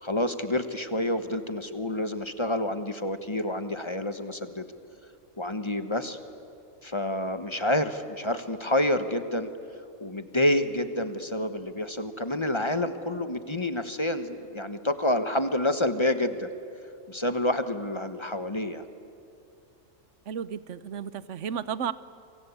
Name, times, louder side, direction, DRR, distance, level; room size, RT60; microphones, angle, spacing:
voice 1, 0.0-4.7 5.4-6.2 6.8-9.5 10.0-16.5 17.1-18.8, left 1 dB, 20° left, 10 dB, 1.2 m, -28 dB
voice 2, 20.3-21.9, right 8 dB, 65° right, 16 dB, 1.1 m, -33 dB
27.5 x 25.5 x 8.4 m, 2.5 s
omnidirectional pair, 1.4 m